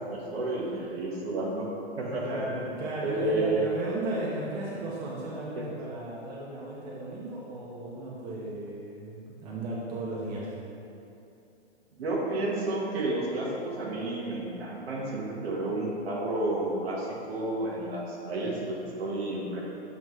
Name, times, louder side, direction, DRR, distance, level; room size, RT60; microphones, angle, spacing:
voice 1, 0.0-1.7 2.0-2.4 3.0-3.6 5.6-5.7 12.0-19.6, right 2 dB, 65° right, -3 dB, 1.4 m, -31 dB
voice 2, 0.6-0.9 2.2-10.5, right 2 dB, 40° right, -6 dB, 1.0 m, -35 dB
7.5 x 4.2 x 3.2 m, 2.8 s
hypercardioid pair, 150°, 33 cm